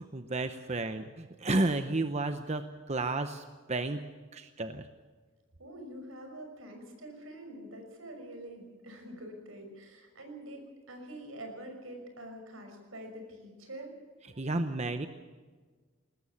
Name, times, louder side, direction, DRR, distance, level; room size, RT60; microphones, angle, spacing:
voice 1, 0.0-4.1 4.3-4.8 14.4-15.1, right 2 dB, 30° right, 9 dB, 0.8 m, -32 dB
voice 2, 5.6-10.6 10.9-13.9, right 1 dB, 75° right, 4 dB, 6.0 m, -45 dB
21.5 x 19.0 x 7.1 m, 1.5 s
head